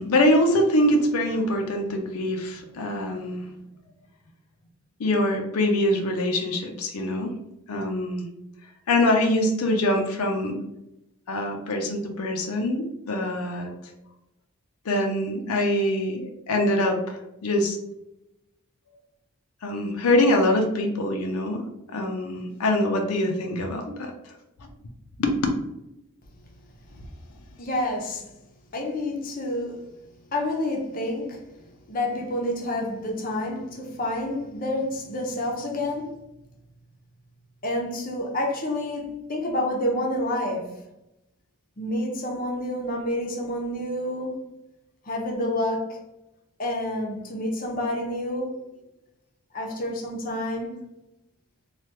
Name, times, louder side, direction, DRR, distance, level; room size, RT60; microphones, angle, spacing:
voice 1, 0.0-3.5 5.0-7.3 7.7-8.3 8.9-10.6 11.3-13.7 14.8-17.8 19.6-24.3 25.2-25.3, left 1 dB, 85° left, 0.5 m, -24 dB
voice 2, 27.6-28.3 28.7-29.9 30.3-31.4 31.9-36.2 37.6-40.8 41.8-44.4 45.0-46.0 46.6-48.6 49.5-50.9, left 1 dB, 40° left, 0.6 m, -28 dB
3.3 x 2.3 x 2.8 m
head